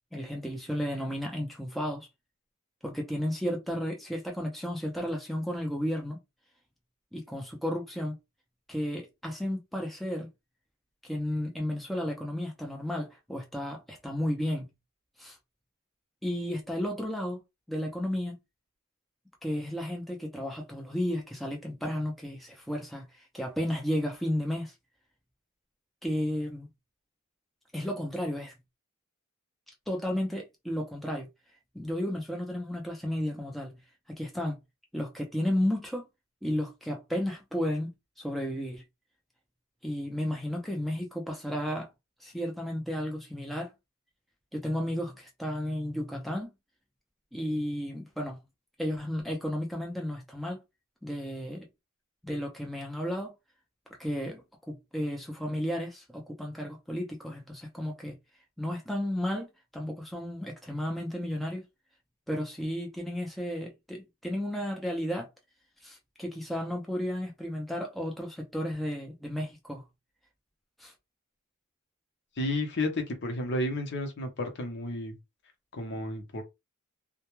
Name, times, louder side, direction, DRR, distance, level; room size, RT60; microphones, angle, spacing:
voice 1, 0.1-2.1 2.8-6.2 7.1-8.2 8.7-10.3 11.0-14.7 15.2-15.4 16.2-17.4 17.7-18.3 19.4-24.7 26.0-26.7 27.7-28.5 29.9-31.3 31.7-33.8 34.1-34.6 34.9-36.0 36.4-37.9 38.2-38.8 39.8-41.9 42.2-43.7 44.5-46.5 47.3-48.4 48.8-50.6 51.0-51.7 52.2-53.3 54.0-58.1 58.6-59.5 59.7-61.6 62.3-65.3 65.8-69.8 70.8-70.9, equal, ahead, 0.5 m, -33 dB
voice 2, 72.4-75.2 75.7-76.4, left 1 dB, 55° left, 0.7 m, -32 dB
2.2 x 2.2 x 3.0 m
head